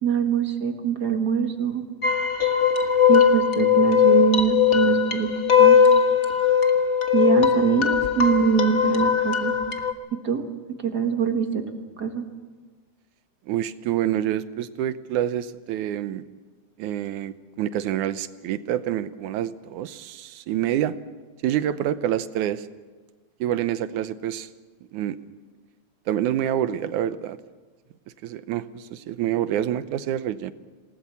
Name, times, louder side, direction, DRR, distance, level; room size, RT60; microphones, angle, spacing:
voice 1, 0.0-1.8 3.1-5.3 5.6-5.8 7.1-9.6 10.1-10.4 10.8-11.6 12.0-12.2, right 7 dB, 40° right, 5 dB, 1.8 m, -23 dB
sound 1, 2.0-9.9, left 7 dB, 45° left, 0.9 m, -19 dB
voice 2, 13.5-16.2 16.8-20.9 21.4-22.7 23.4-24.5 24.9-25.2 26.1-27.4 28.2-30.5, right 11 dB, 85° right, 12 dB, 2.3 m, -27 dB
27.5 x 19.0 x 7.1 m, 1.4 s
omnidirectional pair, 3.4 m